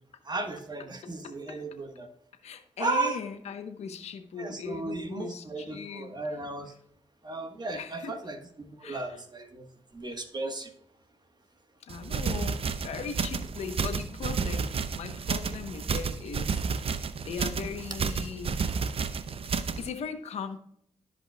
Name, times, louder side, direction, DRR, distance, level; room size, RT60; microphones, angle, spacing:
voice 1, 0.3-2.1 2.8-3.2 4.4-6.7 7.2-9.6 9.9-10.7, right 3 dB, 40° right, 6 dB, 1.4 m, -34 dB
voice 2, 1.0-1.6 2.4-6.1 7.7-8.2 8.8-9.2 11.8-16.9 17.3-18.6 19.8-20.6, left 6 dB, 80° left, 7 dB, 1.0 m, -39 dB
sound 1, 11.9-19.9, right 5 dB, 60° right, 0.6 m, -31 dB
13.5 x 5.3 x 2.3 m, 0.66 s
supercardioid pair, 50°, 11 cm